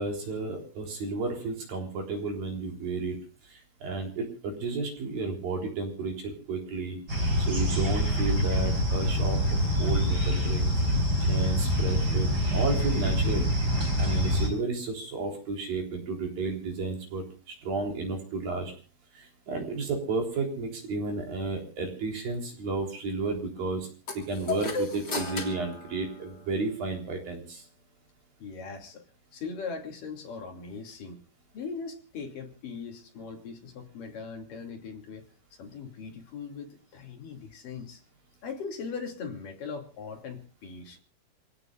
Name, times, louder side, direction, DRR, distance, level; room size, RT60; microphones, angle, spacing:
voice 1, 0.0-3.2 3.5-7.0 7.5-10.7 11.3-13.5 14.0-18.7 19.1-23.9 24.1-27.6, right 3 dB, 45° right, 2 dB, 5.2 m, -32 dB
sound 1, 7.1-14.5, equal, 20° right, 4.7 m, -25 dB
sound 2, 24.1-26.8, left 3 dB, 25° left, 2.7 m, -35 dB
voice 2, 28.4-29.0 29.3-31.2 31.5-35.3 35.6-38.0 38.4-41.0, left 5 dB, 45° left, 2 dB, 3.8 m, -40 dB
27.5 x 18.0 x 2.5 m, 0.39 s
omnidirectional pair, 5.9 m